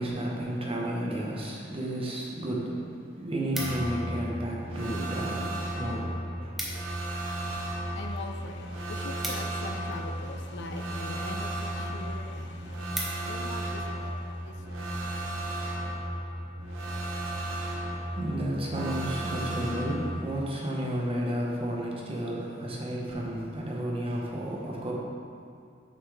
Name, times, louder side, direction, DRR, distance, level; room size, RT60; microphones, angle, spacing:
voice 1, 0.0-6.8 17.9-24.9, right 1 dB, 30° right, -3 dB, 1.0 m, -32 dB
Stapler Manipulation, 3.1-4.1 4.8-5.4 5.7-5.8 6.0-6.1 6.4-7.0 7.3-10.2 10.9-11.2 11.7-11.8 12.2-12.3 12.6-13.6 14.0-14.3, equal, ahead, 0.9 m, -39 dB
sound 1, 3.5-20.2, right 1 dB, 75° right, 0.9 m, -34 dB
voice 2, 7.1-15.8, left 2 dB, 60° left, 4 dB, 0.5 m, -43 dB
6.7 x 5.5 x 3.5 m, 2.4 s
head